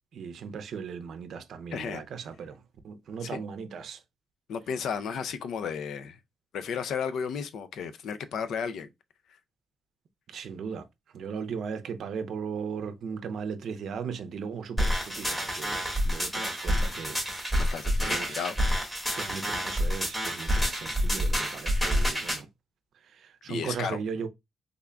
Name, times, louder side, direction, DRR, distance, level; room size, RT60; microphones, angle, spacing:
voice 1, 0.1-2.6 2.8-4.0 10.3-10.8 11.1-17.6 18.0-18.5 19.1-22.5 23.2-24.3, right 6 dB, 60° right, 0.5 m, -37 dB
voice 2, 1.7-2.1 3.2-3.4 4.5-6.2 6.5-8.9 17.6-18.5 23.5-24.0, left 6 dB, 70° left, 0.4 m, -33 dB
sound 1, 14.8-22.4, equal, 10° left, 1.5 m, -28 dB
3.6 x 3.5 x 2.2 m
cardioid pair, 150°, 0 cm